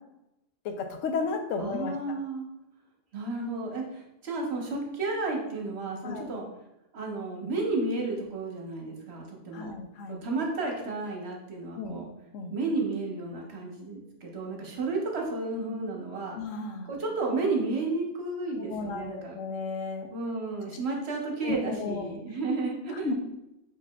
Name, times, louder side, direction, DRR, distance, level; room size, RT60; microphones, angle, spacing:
voice 1, 0.6-1.9 6.0-6.3 9.5-10.2 11.8-12.0 12.3-12.5 16.4-16.9 18.7-20.1 21.4-22.2 23.0-23.1, left 4 dB, 85° left, 5 dB, 1.0 m, -33 dB
voice 2, 1.6-2.5 3.1-6.5 6.9-9.7 10.1-12.1 12.5-16.4 16.8-19.4 20.1-23.1, right 3 dB, 60° right, 0 dB, 1.1 m, -32 dB
4.7 x 4.6 x 2.3 m, 0.90 s
omnidirectional pair, 1.3 m